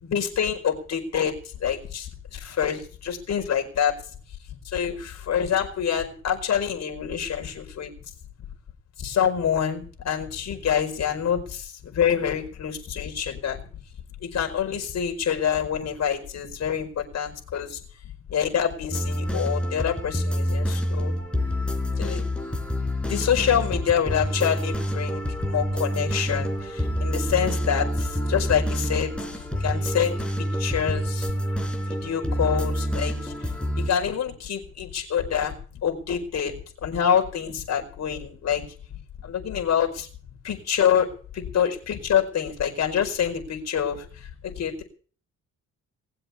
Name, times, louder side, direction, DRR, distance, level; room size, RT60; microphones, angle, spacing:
voice 1, 0.0-1.3 1.6-4.0 4.6-7.9 9.0-13.6 14.2-17.8 18.3-21.2 21.9-22.2 23.1-30.2 30.6-31.3 31.9-36.5 36.8-38.7 39.2-40.1 40.4-41.1 41.3-44.8, left 8 dB, 60° left, 2 dB, 5.0 m, -26 dB
sound 1, 18.9-33.9, equal, 5° left, 4.1 m, -27 dB
20.0 x 7.8 x 8.4 m, 0.42 s
cardioid pair, 90°, 30 cm